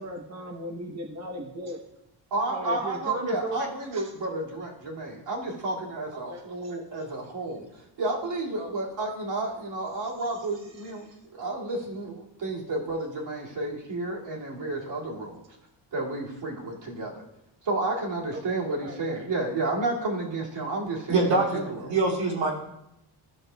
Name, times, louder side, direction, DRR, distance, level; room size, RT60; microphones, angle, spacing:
voice 1, 0.0-1.8 2.5-3.6 3.9-4.1 6.1-6.7 8.5-8.8 10.7-10.9 18.3-19.0, right 1 dB, 35° right, 1 dB, 0.9 m, -37 dB
voice 2, 2.3-7.6 8.0-11.1 11.3-15.4 15.9-17.2 17.6-21.7, right 2 dB, 65° right, -4 dB, 2.2 m, -31 dB
voice 3, 21.1-22.5, right 3 dB, 80° right, -4 dB, 2.6 m, -24 dB
13.5 x 6.4 x 2.2 m, 0.84 s
cardioid pair, 130°, 46 cm